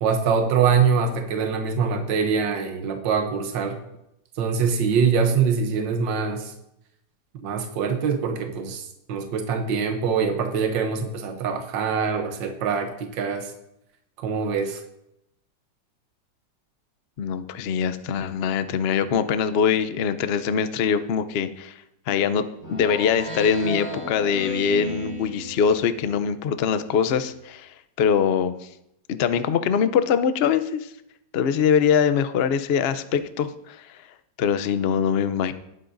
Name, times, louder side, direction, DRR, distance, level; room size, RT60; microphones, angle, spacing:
voice 1, 0.0-3.8 4.4-6.5 7.4-13.5 14.2-14.8, right 6 dB, 80° right, 6 dB, 1.6 m, -24 dB
voice 2, 17.2-21.7 22.1-22.4 22.7-28.7 29.1-30.9 31.3-34.0 34.4-35.5, left 7 dB, 80° left, 12 dB, 0.5 m, -23 dB
Speech synthesizer, 22.6-26.1, right 1 dB, 30° left, 3.6 m, -35 dB
19.0 x 9.6 x 2.6 m, 0.81 s
omnidirectional pair, 2.0 m